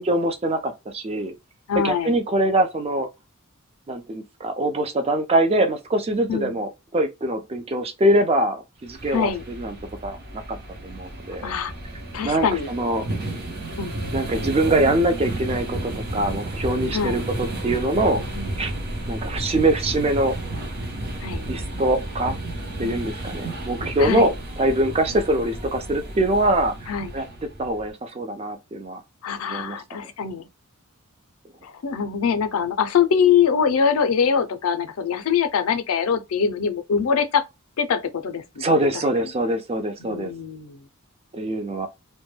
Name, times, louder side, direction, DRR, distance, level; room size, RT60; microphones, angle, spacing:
voice 1, 0.0-1.3 1.8-3.1 3.9-9.7 10.0-10.6 10.8-11.5 12.2-13.0 14.1-18.2 18.6-18.7 19.1-20.4 21.5-22.4 22.8-27.2 27.6-29.0 29.5-30.0 38.6-40.3 41.3-41.9, right 1 dB, 30° right, 0.4 m, -23 dB
voice 2, 1.7-2.2 6.3-6.6 9.1-9.4 11.4-11.7 12.1-12.7 13.8-14.1 16.9-17.3 18.3-18.8 21.2-21.5 22.8-23.1 24.0-24.3 25.1-25.3 26.9-27.1 29.2-30.5 31.6-37.4 37.8-38.9 39.2-39.3 40.0-40.8, left 7 dB, 75° left, 0.4 m, -23 dB
sound 1, 8.8-27.9, right 1 dB, 50° right, 0.8 m, -32 dB
2.1 x 2.1 x 3.1 m
head